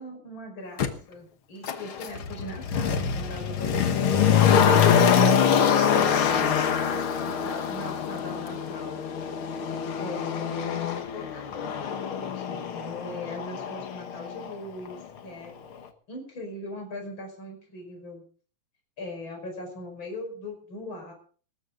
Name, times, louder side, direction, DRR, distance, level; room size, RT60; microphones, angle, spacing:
voice 1, 0.0-5.1 5.9-9.0 10.0-15.5 16.1-18.2 19.0-21.1, left 1 dB, 35° left, 2 dB, 5.9 m, -40 dB
Motor vehicle (road), 0.8-0.9 1.6-14.6 14.8-14.9, left 7 dB, 55° left, 1.7 m, -24 dB
19.5 x 14.0 x 3.9 m, 0.43 s
omnidirectional pair, 3.9 m